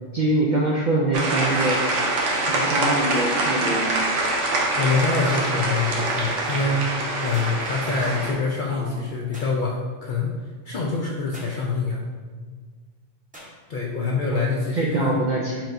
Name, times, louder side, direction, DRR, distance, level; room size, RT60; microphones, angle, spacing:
voice 1, 0.1-1.8 2.5-4.0 8.7-8.9 14.3-14.4 14.7-15.6, right 2 dB, 60° right, -3 dB, 0.5 m, -24 dB
sound 1, 1.1-8.3, right 2 dB, 75° right, 1.0 m, -24 dB
voice 2, 4.7-6.9 7.2-10.3 10.6-12.0 13.7-15.1, left 4 dB, 60° left, -2 dB, 0.5 m, -25 dB
sound 2, 7.3-7.6 9.3-9.6 11.3-11.6 13.3-13.6, equal, 10° right, 0.8 m, -43 dB
4.6 x 4.4 x 2.6 m, 1.5 s
omnidirectional pair, 1.3 m